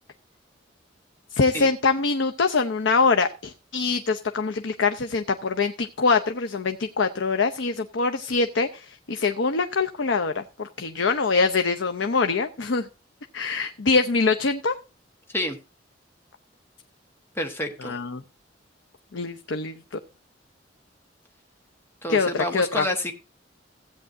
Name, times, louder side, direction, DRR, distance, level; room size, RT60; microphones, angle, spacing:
voice 1, 1.3-12.9 13.3-14.7 17.8-18.2 19.1-19.7 22.1-22.8, left 4 dB, 85° left, 7 dB, 0.7 m, -24 dB
voice 2, 17.3-18.0 22.0-23.1, left 1 dB, 15° left, 3 dB, 1.3 m, -28 dB
16.0 x 8.7 x 2.6 m, 0.29 s
head